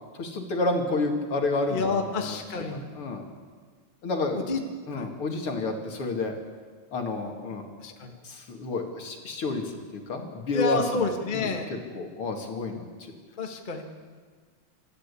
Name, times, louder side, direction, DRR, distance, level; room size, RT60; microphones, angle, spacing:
voice 1, 0.2-3.3 4.0-4.5 4.9-6.3 6.9-7.6 8.2-9.6 9.9-13.1, left 3 dB, 40° left, 3 dB, 2.7 m, -30 dB
voice 2, 1.7-2.8 4.3-4.6 4.9-5.1 7.8-8.1 10.5-11.7 13.4-13.8, left 3 dB, 65° left, 3 dB, 0.5 m, -29 dB
27.0 x 13.5 x 8.5 m, 1.5 s
omnidirectional pair, 4.2 m